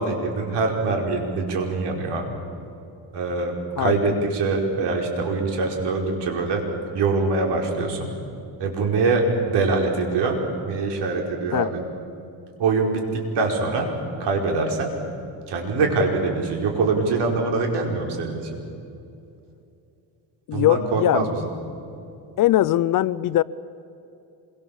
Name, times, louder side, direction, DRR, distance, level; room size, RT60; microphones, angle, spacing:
voice 1, 0.0-2.3 3.1-6.6 6.9-8.1 8.6-10.4 10.6-11.8 12.6-13.9 14.2-14.9 15.5-18.5 20.5-21.4, right 3 dB, 65° right, 2 dB, 5.0 m, -24 dB
voice 2, 20.5-21.3 22.4-23.4, left 14 dB, 50° left, 18 dB, 0.6 m, -20 dB
26.5 x 23.5 x 7.3 m, 2.7 s
cardioid pair, 125°, 44 cm